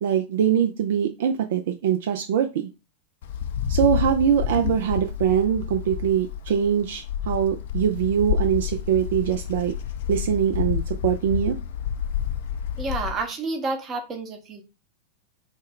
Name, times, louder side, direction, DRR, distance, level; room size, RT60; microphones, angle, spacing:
voice 1, 0.0-2.7 3.7-9.7 10.1-11.6, right 9 dB, 55° right, 5 dB, 0.3 m, -23 dB
Wind, 3.2-13.2, left 9 dB, 55° left, 0.4 m, -29 dB
voice 2, 12.8-14.6, right 3 dB, 25° right, 4 dB, 0.8 m, -29 dB
3.1 x 2.1 x 3.4 m, 0.28 s
figure-of-eight pair, 90°, 0 cm